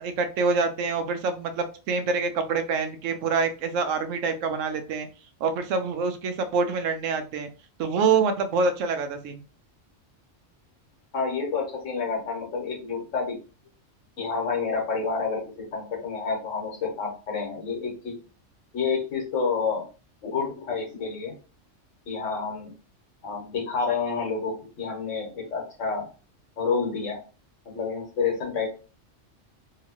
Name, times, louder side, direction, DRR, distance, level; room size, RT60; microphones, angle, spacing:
voice 1, 0.0-5.1 5.4-7.5 7.8-9.4, right 4 dB, 80° right, 8 dB, 1.0 m, -26 dB
voice 2, 11.1-13.4 14.2-18.2 18.7-19.8 20.2-21.3 22.1-22.7 23.2-26.1 26.6-27.2 27.6-28.7, left 5 dB, 75° left, 1 dB, 1.4 m, -29 dB
2.9 x 2.7 x 2.9 m, 0.34 s
omnidirectional pair, 1.3 m